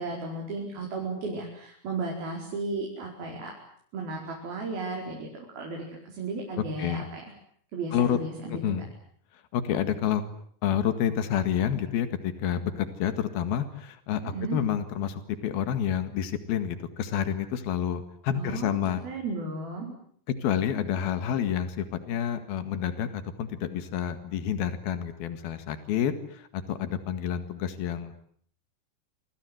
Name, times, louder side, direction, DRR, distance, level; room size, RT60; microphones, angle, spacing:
voice 1, 0.0-3.5 3.9-7.2 7.7-8.8 14.3-14.6 18.3-19.9, right 3 dB, 80° right, 0 dB, 6.7 m, -34 dB
voice 2, 6.6-7.1 7.9-8.2 8.5-8.9 9.5-10.2 10.6-19.0 20.4-28.1, left 9 dB, 80° left, 9 dB, 3.8 m, -29 dB
28.0 x 27.0 x 7.9 m, 0.63 s
omnidirectional pair, 4.2 m